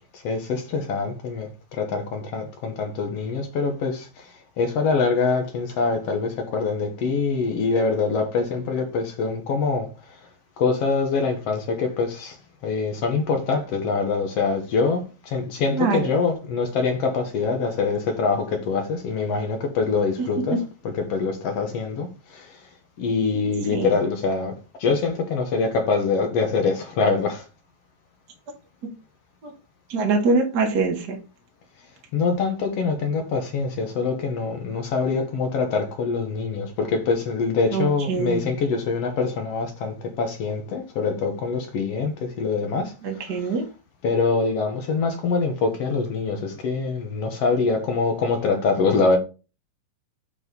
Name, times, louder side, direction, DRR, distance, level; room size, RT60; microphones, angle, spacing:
voice 1, 0.1-10.2 10.6-12.4 12.6-22.6 23.0-27.5 32.1-43.6 44.0-49.2, left 4 dB, 60° left, 1.9 m, -24 dB
voice 2, 15.7-16.1 23.7-23.9 29.4-29.5 29.9-31.2 37.7-38.5 43.0-43.6, right 4 dB, 45° right, 1.4 m, -23 dB
6.4 x 3.9 x 5.3 m
omnidirectional pair, 3.9 m